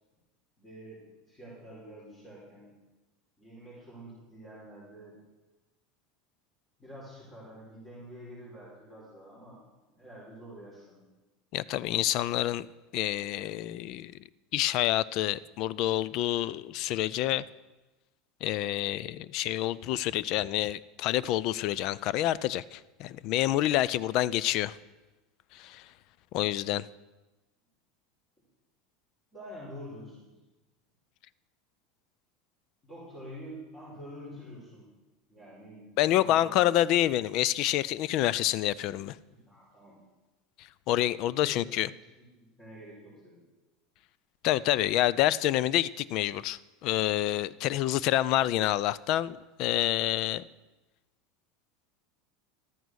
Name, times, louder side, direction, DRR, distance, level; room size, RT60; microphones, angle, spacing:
voice 1, 0.6-2.7 3.4-5.1 6.8-9.6 9.9-11.0 29.3-30.3 32.8-34.9 35.3-35.9 36.2-36.7 39.4-40.0 41.4-43.4, equal, 15° left, -6 dB, 4.6 m, -47 dB
voice 2, 11.5-12.7 12.9-14.1 14.5-17.4 18.4-24.8 25.5-25.9 26.3-26.9 36.0-39.2 40.6-41.9 44.4-50.4, left 14 dB, 55° left, 20 dB, 0.4 m, -28 dB
12.5 x 9.3 x 6.3 m, 1.1 s
supercardioid pair, 135°, 0 cm